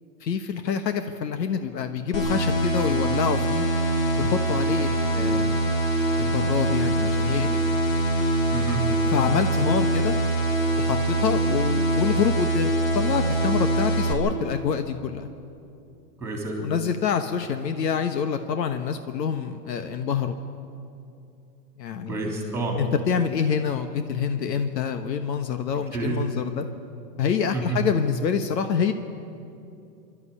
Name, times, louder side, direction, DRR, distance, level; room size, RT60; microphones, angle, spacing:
voice 1, 0.2-3.7 4.2-5.7 6.2-7.6 9.1-10.2 10.8-15.3 16.6-20.4 21.8-22.4 22.8-26.7 27.2-28.9, left 7 dB, 80° left, 8 dB, 1.3 m, -26 dB
sound 1, 2.1-14.1, right 1 dB, 55° left, 3.5 m, -23 dB
voice 2, 8.5-8.9 16.2-16.6 22.1-22.8 25.9-26.2 27.5-27.8, right 3 dB, 5° right, 1 dB, 3.3 m, -29 dB
25.5 x 12.5 x 8.5 m, 2.7 s
hypercardioid pair, 160°, 49 cm